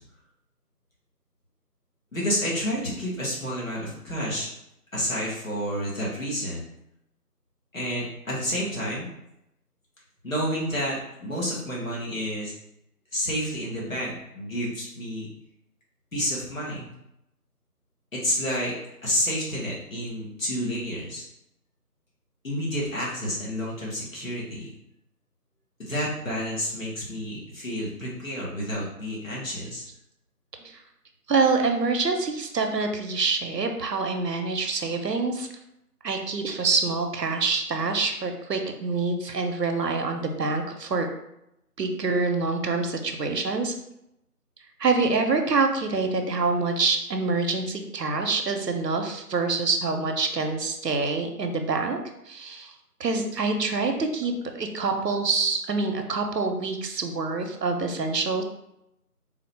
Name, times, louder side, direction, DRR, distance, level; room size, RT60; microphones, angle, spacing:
voice 1, 2.1-4.5 4.9-6.6 7.7-9.1 10.2-12.5 13.1-15.3 16.1-16.9 18.1-18.7 19.0-21.2 22.4-24.7 25.8-29.8, equal, 55° left, -6 dB, 1.2 m, -30 dB
voice 2, 31.3-35.5 36.0-41.1 41.8-43.7 44.8-52.0 52.3-52.7 53.0-58.4, right 4 dB, 85° right, 5 dB, 0.7 m, -26 dB
3.8 x 2.1 x 3.2 m, 0.83 s
figure-of-eight pair, 175°, 48 cm